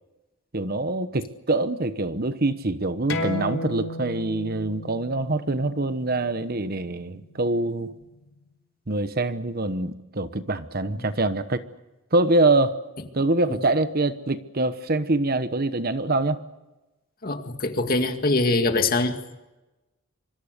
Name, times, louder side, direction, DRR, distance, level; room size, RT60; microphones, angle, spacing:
voice 1, 0.5-7.9 8.9-11.7 12.1-12.8 13.1-16.4, right 2 dB, 45° right, 12 dB, 1.1 m, -24 dB
sound 1, 3.1-8.3, left 2 dB, 75° left, 3.6 m, -35 dB
voice 2, 17.2-19.2, left 2 dB, 45° left, 6 dB, 2.2 m, -23 dB
25.5 x 25.5 x 6.7 m, 1.0 s
head